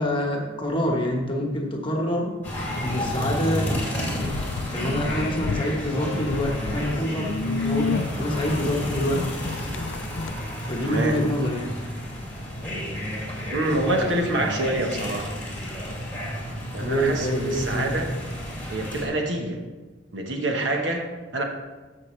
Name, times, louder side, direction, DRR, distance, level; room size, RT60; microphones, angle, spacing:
voice 1, 0.0-2.4 2.8-3.8 4.2-4.3 4.7-9.2 10.7-11.7 16.8-17.9, equal, 25° left, 1 dB, 1.2 m, -26 dB
sound 1, 2.4-19.1, equal, 10° left, 2.4 m, -31 dB
sound 2, 4.1-5.7 6.0-10.3, left 4 dB, 75° left, 0.4 m, -31 dB
voice 2, 10.8-11.2 13.5-15.3 16.7-18.1 18.7-19.6 20.1-21.1 21.3-21.4, right 1 dB, 65° right, 2 dB, 1.2 m, -26 dB
14.5 x 5.9 x 3.3 m, 1.3 s
head